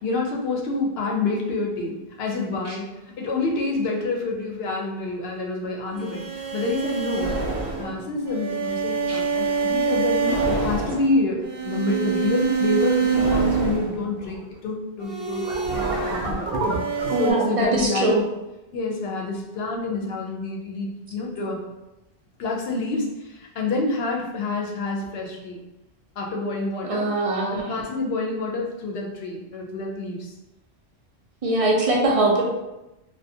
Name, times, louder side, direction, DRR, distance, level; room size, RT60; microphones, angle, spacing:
voice 1, 0.0-2.9 3.2-7.4 7.8-16.5 17.2-18.2 18.7-21.6 22.4-25.6 26.2-27.1 27.5-30.3, left 3 dB, 75° left, -1 dB, 0.8 m, -27 dB
sound 1, 5.9-14.4 15.0-17.3, right 5 dB, 70° right, 0.7 m, -25 dB
voice 2, 17.1-18.2 26.8-27.8 31.4-32.4, right 2 dB, 50° right, -2 dB, 0.4 m, -22 dB
2.4 x 2.2 x 2.6 m, 0.96 s
omnidirectional pair, 1.1 m